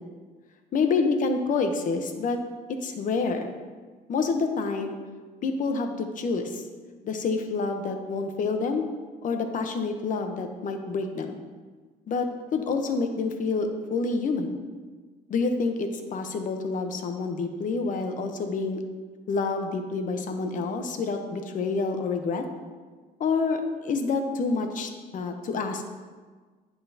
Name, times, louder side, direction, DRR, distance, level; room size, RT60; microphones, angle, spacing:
voice 1, 0.7-2.4 2.7-3.5 4.1-5.0 5.4-6.6 7.0-8.9 9.2-11.4 12.1-14.6 15.3-18.8 19.3-22.4 23.2-25.8, left 4 dB, 50° left, 6 dB, 0.8 m, -28 dB
9.4 x 5.6 x 2.8 m, 1.4 s
cardioid pair, 110°, 17 cm